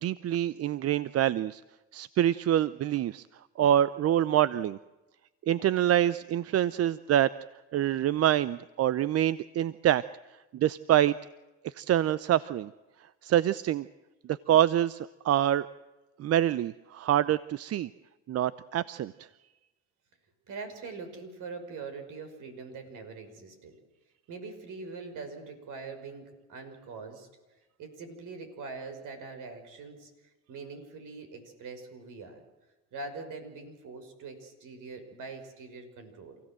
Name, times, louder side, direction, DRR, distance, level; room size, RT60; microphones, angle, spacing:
voice 1, 0.0-1.6 1.9-3.2 3.6-4.8 5.5-7.3 7.7-10.0 10.5-11.2 11.6-12.7 13.2-13.9 14.3-15.7 16.2-17.9 18.3-19.1, right 11 dB, 45° right, 17 dB, 0.7 m, -26 dB
voice 2, 20.5-23.8 24.3-27.3 27.8-32.4 32.9-36.4, right 4 dB, 60° right, 7 dB, 5.9 m, -43 dB
28.0 x 16.5 x 7.7 m, 1.1 s
supercardioid pair, 80°, 35 cm